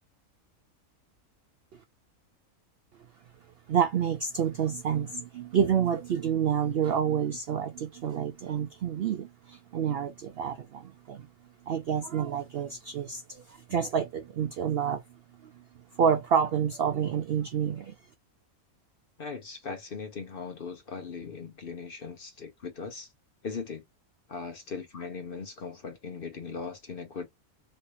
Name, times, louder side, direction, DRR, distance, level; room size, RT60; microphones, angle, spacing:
voice 1, 3.7-11.3 11.7-15.0 15.4-15.6 15.9-17.9, right 8 dB, 70° right, 0.6 m, -28 dB
voice 2, 19.2-23.1 23.4-23.8 24.3-27.3, left 5 dB, 50° left, 0.8 m, -39 dB
3.2 x 3.0 x 2.8 m
omnidirectional pair, 1.5 m